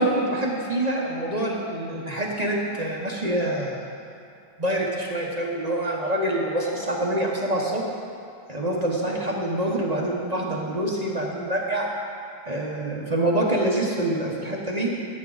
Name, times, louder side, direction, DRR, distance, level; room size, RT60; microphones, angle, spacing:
voice 1, 0.0-3.8 4.6-7.8 8.5-11.8 12.5-14.9, right 1 dB, 30° right, -3 dB, 0.8 m, -26 dB
15.5 x 8.8 x 4.0 m, 2.5 s
omnidirectional pair, 2.2 m